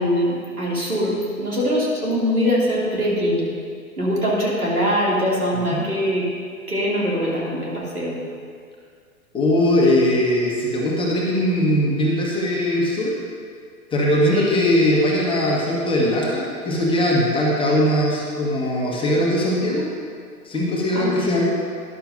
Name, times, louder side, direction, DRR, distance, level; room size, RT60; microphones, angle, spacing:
voice 1, 0.0-3.5 4.0-6.3 6.7-8.2 14.3-14.5 20.9-21.3, equal, 80° right, -5 dB, 3.0 m, -22 dB
voice 2, 9.3-13.1 13.9-19.8 20.4-21.4, left 1 dB, 10° left, -4 dB, 1.5 m, -20 dB
13.0 x 11.0 x 2.8 m, 2.1 s
figure-of-eight pair, 105°, 44 cm